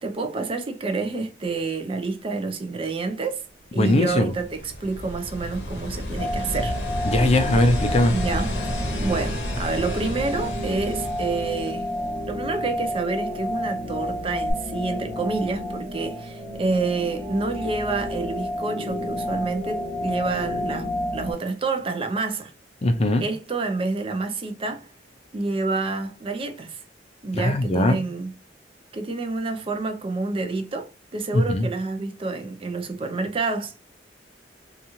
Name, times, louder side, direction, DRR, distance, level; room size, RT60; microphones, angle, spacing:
voice 1, 0.0-3.4 3.7-6.8 8.1-11.9 12.3-22.5 23.2-24.9 25.3-26.8 27.2-28.3 28.9-33.7, right 3 dB, 30° right, 0.4 m, -28 dB
voice 2, 3.8-4.3 7.1-8.2 22.8-23.2 27.3-28.0 31.3-31.7, left 1 dB, 35° left, 0.4 m, -20 dB
sound 1, 4.0-12.3 14.5-14.6, left 1 dB, 85° left, 0.8 m, -31 dB
sound 2, 6.2-21.3, left 1 dB, 10° right, 1.1 m, -31 dB
2.9 x 2.3 x 2.6 m
head